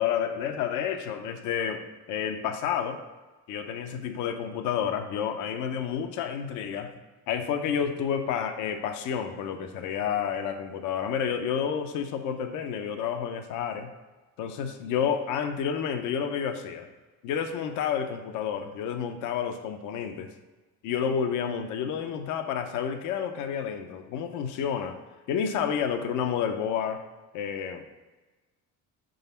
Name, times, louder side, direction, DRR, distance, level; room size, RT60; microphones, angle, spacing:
voice 1, 0.0-3.0 3.5-6.9 7.3-13.9 14.4-16.9 17.2-20.3 20.8-25.0 25.3-27.0 27.3-27.8, left 8 dB, 75° left, 6 dB, 0.7 m, -30 dB
5.0 x 3.9 x 5.5 m, 1.2 s
cardioid pair, 115°, 31 cm